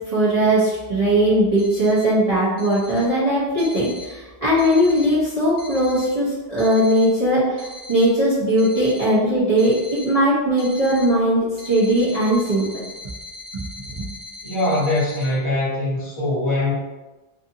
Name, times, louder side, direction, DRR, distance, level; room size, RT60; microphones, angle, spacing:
voice 1, 0.1-9.7 10.0-12.8 13.5-14.1, right 1 dB, 40° right, -10 dB, 0.7 m, -19 dB
sound 1, 1.6-2.0 2.6-3.0 3.6-4.1 4.6-5.1 5.6-6.1 6.6-7.1 7.6-8.1 8.6-9.1 9.6-10.1 10.6-11.1 11.6-15.3, left 2 dB, 70° right, 1.2 m, -39 dB
voice 2, 14.4-16.7, left 1 dB, 30° left, -9 dB, 0.8 m, -22 dB
2.5 x 2.5 x 2.6 m, 1.2 s
omnidirectional pair, 1.1 m